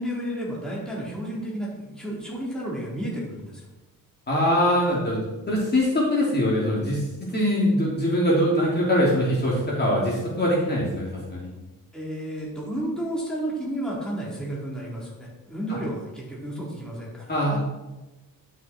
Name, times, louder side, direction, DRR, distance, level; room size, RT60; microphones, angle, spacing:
voice 1, 0.0-3.6 11.9-17.2 17.5-17.6, right 1 dB, ahead, -5 dB, 3.7 m, -32 dB
voice 2, 4.3-5.2 5.5-7.0 7.3-11.5 15.7-15.8 17.3-17.6, equal, 30° left, -5 dB, 3.3 m, -22 dB
12.0 x 6.6 x 4.5 m, 1.1 s
cardioid pair, 105°, 36 cm